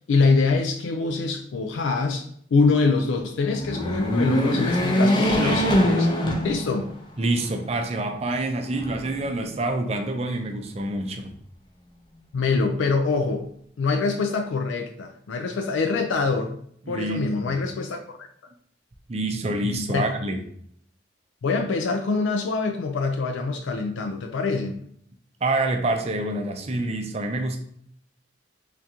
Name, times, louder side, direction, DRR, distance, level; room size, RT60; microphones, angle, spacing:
voice 1, 0.1-2.2 2.5-6.1 6.4-6.9 12.3-13.5 13.8-16.5 16.9-18.3 19.9-20.1 21.4-24.7, left 4 dB, 80° left, 5 dB, 0.4 m, -24 dB
sound 1, 3.5-7.1 7.6-7.7 8.7-9.5, equal, 25° left, 0.5 m, -23 dB
voice 2, 7.2-11.3 16.9-17.6 19.1-20.4 25.4-27.6, right 2 dB, 35° right, 5 dB, 0.5 m, -27 dB
3.7 x 3.5 x 2.8 m, 0.67 s
head